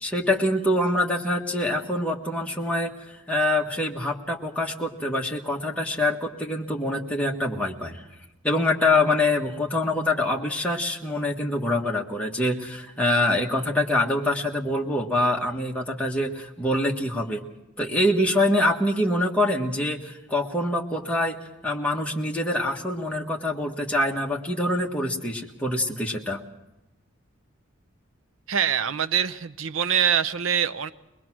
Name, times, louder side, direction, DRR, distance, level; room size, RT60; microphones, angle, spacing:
voice 1, 0.0-8.0 8.4-17.4 17.8-21.3 21.6-26.4, left 1 dB, 5° left, -1 dB, 1.6 m, -25 dB
voice 2, 28.5-30.9, right 8 dB, 80° right, 13 dB, 0.7 m, -24 dB
23.0 x 20.5 x 6.2 m, 0.95 s
head